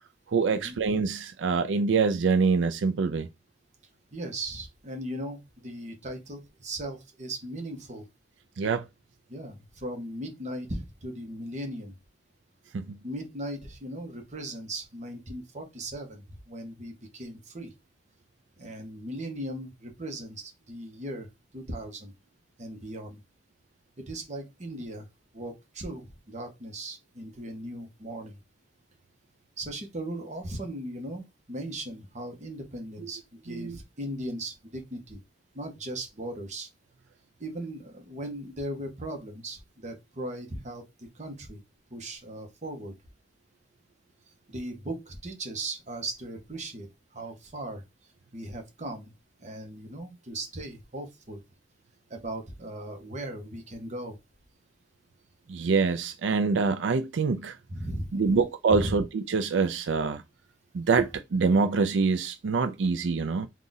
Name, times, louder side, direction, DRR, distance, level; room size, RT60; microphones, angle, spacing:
voice 1, 0.3-3.3 8.6-8.8 12.7-13.0 33.5-33.8 55.5-57.5 58.1-60.2 60.7-63.5, right 4 dB, 85° right, 0.4 m, -25 dB
voice 2, 4.1-8.0 9.3-11.9 13.0-17.7 18.6-21.3 21.5-22.1 22.6-23.2 24.1-25.1 25.3-28.4 29.6-35.2 35.5-36.7 37.4-41.6 41.9-42.9 44.5-47.8 48.3-49.1 49.4-51.4 52.1-54.2 57.7-58.4 58.7-58.9, right 1 dB, 40° right, 1.0 m, -38 dB
3.8 x 2.4 x 3.9 m
head